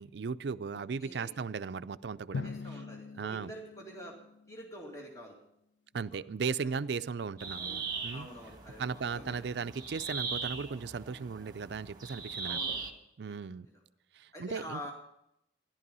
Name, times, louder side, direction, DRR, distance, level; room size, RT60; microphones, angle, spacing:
voice 1, 0.0-2.5 3.2-3.5 5.9-8.3 8.8-12.6 13.2-13.7 14.1-14.8, right 5 dB, 70° right, 14 dB, 0.4 m, -36 dB
voice 2, 0.7-1.4 2.4-4.2 4.5-5.4 5.9-6.2 6.6-6.8 8.1-9.5 12.4-12.9 13.6-13.7 14.3-14.9, equal, 20° left, -1 dB, 2.2 m, -46 dB
Drum, 2.3-5.1, left 4 dB, 85° left, 0.4 m, -43 dB
sound 1, 7.4-12.9, right 5 dB, 25° right, 1.4 m, -40 dB
14.0 x 11.5 x 5.4 m, 0.78 s
head